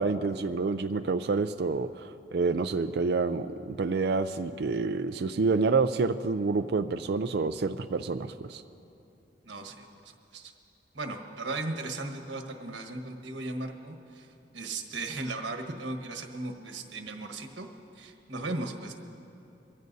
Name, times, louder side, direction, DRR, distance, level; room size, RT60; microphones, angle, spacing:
voice 1, 0.0-8.6, right 4 dB, 60° right, 8 dB, 0.4 m, -28 dB
voice 2, 9.4-10.5 10.9-14.3 14.5-17.7 17.9-18.9, right 2 dB, 80° right, 3 dB, 1.3 m, -37 dB
23.5 x 15.5 x 2.7 m, 2.8 s
head